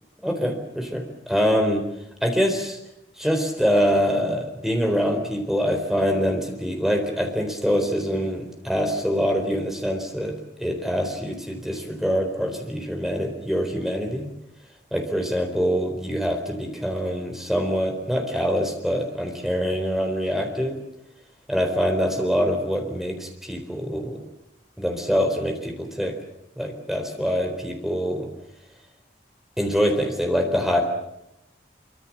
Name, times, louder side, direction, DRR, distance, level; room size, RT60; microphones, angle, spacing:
voice 1, 0.2-1.9 2.2-2.8 3.2-14.3 14.9-20.8 21.5-24.2 24.8-26.1 26.6-28.3 29.6-30.8, equal, ahead, 4 dB, 4.1 m, -24 dB
25.0 x 24.5 x 7.5 m, 0.84 s
head